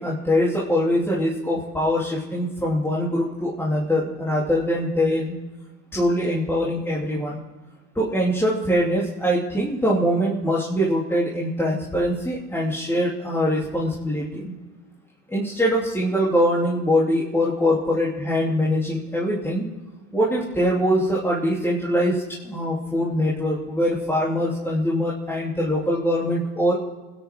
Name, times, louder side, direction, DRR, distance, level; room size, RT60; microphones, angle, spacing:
voice 1, 0.0-5.3 5.9-7.4 8.0-14.5 15.3-19.7 20.1-26.7, equal, 5° left, -6 dB, 3.5 m, -23 dB
28.5 x 10.5 x 3.9 m, 1.2 s
hypercardioid pair, 80°, 36 cm